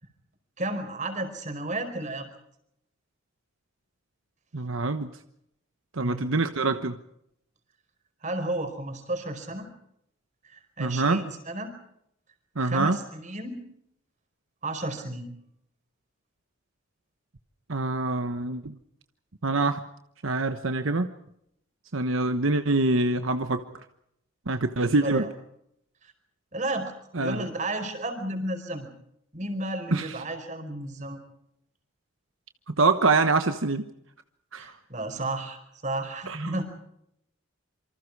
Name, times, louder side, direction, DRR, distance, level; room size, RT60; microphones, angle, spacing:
voice 1, 0.6-2.3 6.0-6.3 8.2-9.7 10.4-11.8 12.6-13.6 14.6-15.3 25.0-25.3 26.0-26.1 26.5-26.9 27.2-28.9 29.3-31.2 34.6-36.6, right 2 dB, 35° right, 7 dB, 4.9 m, -32 dB
voice 2, 4.5-5.1 5.9-7.0 10.8-11.2 12.6-13.0 17.7-18.7 19.4-19.8 20.2-21.1 21.9-23.6 24.5-25.2 27.1-27.5 29.9-30.2 32.8-33.8 34.5-34.7 36.3-36.5, right 3 dB, 80° right, 8 dB, 1.2 m, -25 dB
27.5 x 25.0 x 4.8 m, 0.76 s
head